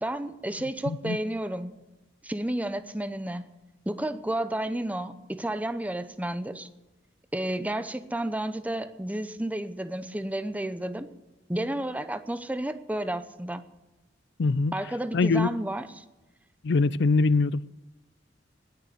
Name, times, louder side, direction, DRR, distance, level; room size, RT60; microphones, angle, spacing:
voice 1, 0.0-1.8 2.2-3.5 3.9-6.7 7.3-11.1 11.5-13.6 14.7-16.0, right 1 dB, 10° right, 0.7 m, -31 dB
voice 2, 0.9-1.2 14.4-14.7 15.1-15.5 16.6-17.7, left 3 dB, 65° left, 0.5 m, -23 dB
18.5 x 6.5 x 9.4 m
head